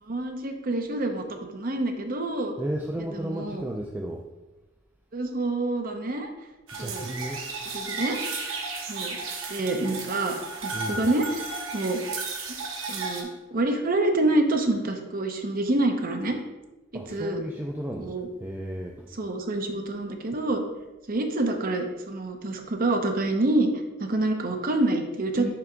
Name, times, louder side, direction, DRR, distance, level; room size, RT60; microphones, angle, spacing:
voice 1, 0.0-2.5 3.1-3.6 5.1-6.3 6.8-7.1 7.7-8.2 8.9-9.2 9.5-11.5 11.7-12.0 12.9-16.4 17.1-17.4 18.0-18.3 19.2-20.6 21.1-23.7 24.0-25.5, right 2 dB, 45° right, 4 dB, 0.8 m, -27 dB
voice 2, 2.6-4.2 6.8-7.4 10.7-11.1 16.9-19.1 20.3-20.4 25.3-25.5, right 1 dB, 10° right, 0 dB, 0.3 m, -34 dB
sound 1, 6.7-13.2, right 3 dB, 80° right, 1.1 m, -34 dB
5.9 x 3.5 x 5.1 m, 1.1 s
head